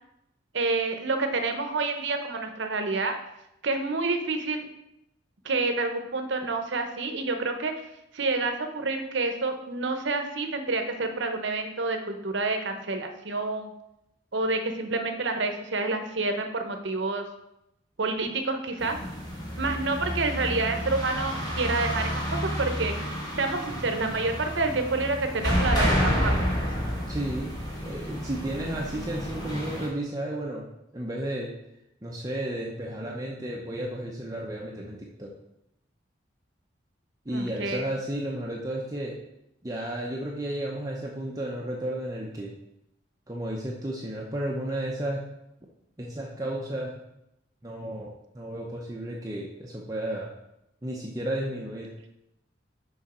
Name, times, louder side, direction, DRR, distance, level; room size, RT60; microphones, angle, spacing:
voice 1, 0.5-3.1 3.6-4.7 5.4-7.7 8.1-13.7 14.3-17.2 18.0-19.0 19.6-23.1 23.4-26.7 37.3-37.9, right 3 dB, 70° right, 6 dB, 0.9 m, -28 dB
sound 1, 18.8-29.9, equal, 20° left, 1.4 m, -30 dB
voice 2, 27.1-30.7 30.9-31.5 32.0-35.3 37.2-39.2 39.6-42.5 43.3-45.2 46.0-47.0 47.6-50.3 50.8-51.9, right 1 dB, 20° right, -2 dB, 0.7 m, -33 dB
6.1 x 5.5 x 4.3 m, 0.84 s
head